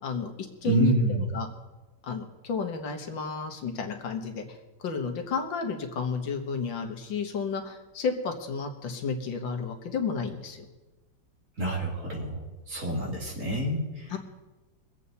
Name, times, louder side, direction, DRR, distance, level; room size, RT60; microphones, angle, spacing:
voice 1, 0.0-0.3 0.6-1.5 2.0-4.6 4.8-10.7 14.1-14.2, left 4 dB, 80° left, 5 dB, 2.0 m, -31 dB
voice 2, 0.6-1.2 11.6-12.4 12.7-14.2, right 1 dB, 40° right, -2 dB, 3.0 m, -28 dB
23.5 x 8.3 x 4.1 m, 1.2 s
omnidirectional pair, 2.0 m